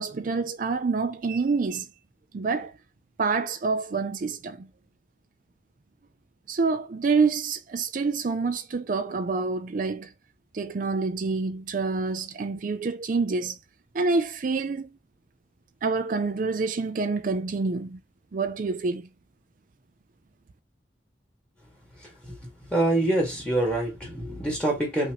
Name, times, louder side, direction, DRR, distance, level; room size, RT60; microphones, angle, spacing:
voice 1, 0.0-1.9 2.3-2.7 3.2-4.7 6.5-10.1 10.5-13.6 13.9-14.9 15.8-18.0 18.3-19.1, right 4 dB, 50° right, 0.4 m, -27 dB
voice 2, 22.7-25.1, right 1 dB, 5° left, 1.8 m, -25 dB
5.6 x 2.7 x 2.9 m
head